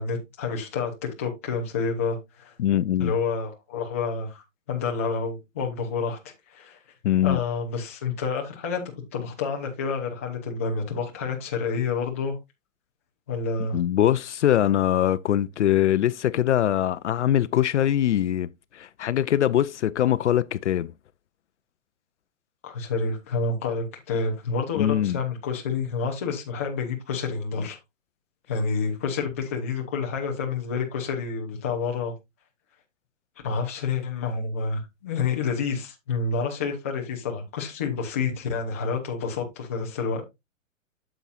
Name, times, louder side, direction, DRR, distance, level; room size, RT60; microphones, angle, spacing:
voice 1, 0.0-2.5 3.0-6.8 7.2-8.8 9.1-12.4 13.3-13.8 22.6-27.8 28.5-32.1 33.4-40.2, left 5 dB, 10° left, 0.5 m, -29 dB
voice 2, 2.6-3.1 7.0-7.4 13.7-18.5 18.7-20.9 24.8-25.2, left 11 dB, 60° left, 0.5 m, -22 dB
8.9 x 7.0 x 2.4 m
hypercardioid pair, 165°, 40 cm